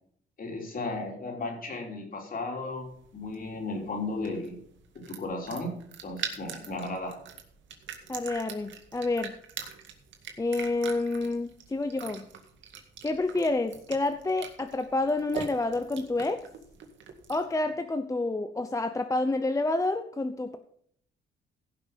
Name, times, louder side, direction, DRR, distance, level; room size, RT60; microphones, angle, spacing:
voice 1, 0.4-4.6 5.0-5.7 6.0-7.2, left 2 dB, 45° left, 2 dB, 3.6 m, -35 dB
sound 1, 2.7-17.6, right 7 dB, 70° right, 2.0 m, -43 dB
voice 2, 8.1-9.3 10.4-12.2 13.0-16.4 17.3-20.6, left 2 dB, 15° left, 8 dB, 0.7 m, -29 dB
16.0 x 6.0 x 5.3 m, 0.65 s
cardioid pair, 90°, 20 cm